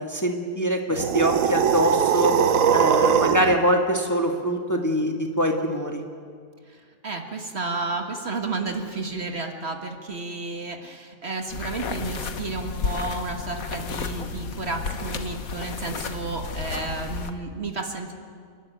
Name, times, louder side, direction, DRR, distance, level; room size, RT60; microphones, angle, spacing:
voice 1, 0.0-2.4 2.7-6.0, equal, 10° left, 2 dB, 1.6 m, -24 dB
sound 1, 0.9-3.5, right 8 dB, 65° right, 1.3 m, -21 dB
voice 2, 6.7-18.1, right 3 dB, 45° right, 4 dB, 1.8 m, -32 dB
sound 2, 11.5-17.3, left 5 dB, 75° left, 1.6 m, -32 dB
30.0 x 12.0 x 9.3 m, 2.1 s
omnidirectional pair, 1.5 m